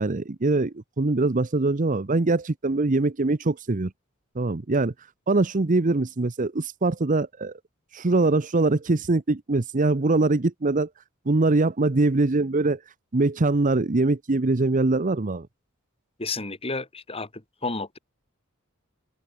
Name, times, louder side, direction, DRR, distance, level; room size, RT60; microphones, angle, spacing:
voice 1, 0.0-3.9 4.4-4.9 5.3-7.5 7.9-10.9 11.3-12.8 13.1-15.5, right 2 dB, 40° right, 0.8 m, -23 dB
voice 2, 16.2-17.3 17.6-18.0, left 3 dB, 30° left, 2.6 m, -31 dB
open air
head